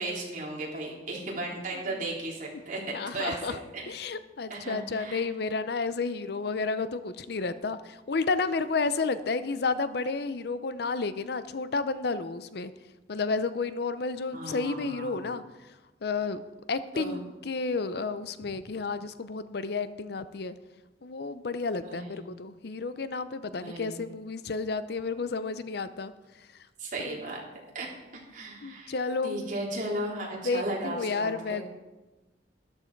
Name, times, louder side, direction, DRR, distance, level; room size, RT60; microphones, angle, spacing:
voice 1, 0.0-3.9 4.5-5.3 14.3-15.3 16.9-17.2 21.8-22.2 23.6-23.9 26.8-27.4 27.7-28.9 29.2-31.7, right 2 dB, 45° right, -3 dB, 3.2 m, -36 dB
voice 2, 2.9-3.6 3.9-12.7 13.1-15.4 16.0-16.4 16.7-20.5 21.0-26.1 27.1-27.2 28.6-29.4 30.4-31.7, left 4 dB, 65° left, 13 dB, 0.6 m, -31 dB
13.0 x 11.5 x 4.6 m, 1.1 s
head